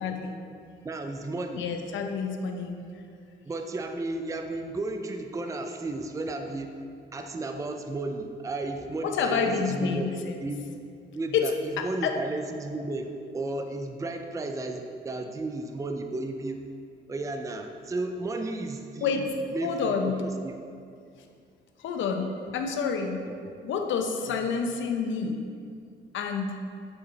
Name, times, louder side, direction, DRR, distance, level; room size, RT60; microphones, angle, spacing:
voice 1, 0.0-0.4 1.6-2.8 9.0-10.4 11.3-11.5 11.8-12.1 19.0-19.2 19.6-20.2 21.8-23.2 23.6-25.4 26.1-26.6, left 5 dB, 75° left, 4 dB, 0.8 m, -28 dB
voice 2, 0.8-1.7 3.5-6.8 7.1-10.1 10.4-10.7 11.1-16.6 17.1-19.2 19.5-20.6 23.3-23.5, right 2 dB, 15° right, 5 dB, 0.5 m, -33 dB
7.9 x 4.6 x 4.1 m, 2.4 s
cardioid pair, 90°, 20 cm